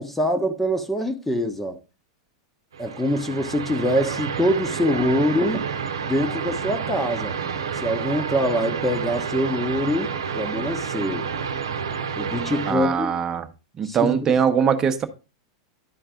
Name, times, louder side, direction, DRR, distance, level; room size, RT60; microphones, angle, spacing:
voice 1, 0.0-1.8 2.8-5.7 6.1-7.4 7.8-11.3 12.1-13.1 13.8-14.2, equal, 5° left, 1.1 m, -24 dB
sound 1, 2.7-12.7, right 6 dB, 70° right, 0.9 m, -29 dB
voice 2, 12.7-13.5 13.8-15.1, right 7 dB, 25° right, 1.1 m, -21 dB
11.5 x 4.6 x 3.7 m
figure-of-eight pair, 90°, 2 cm